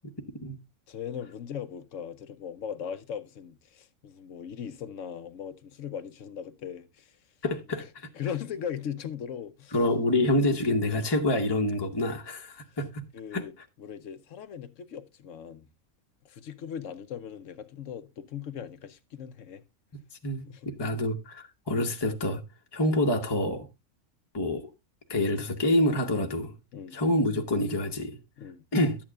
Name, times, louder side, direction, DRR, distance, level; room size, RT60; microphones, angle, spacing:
voice 1, 0.9-7.2 7.8-7.9 8.1-9.8 13.1-13.5 13.8-15.7 16.2-19.6 20.4-20.7 26.7-27.0 28.4-28.6, left 8 dB, 65° left, 1.0 m, -39 dB
voice 2, 7.4-7.9 9.7-13.0 13.3-13.5 20.2-22.4 22.7-23.7 24.3-24.7 25.1-26.5 26.9-28.2 28.7-29.0, left 1 dB, 20° left, 0.9 m, -27 dB
12.5 x 8.6 x 2.3 m
omnidirectional pair, 1.5 m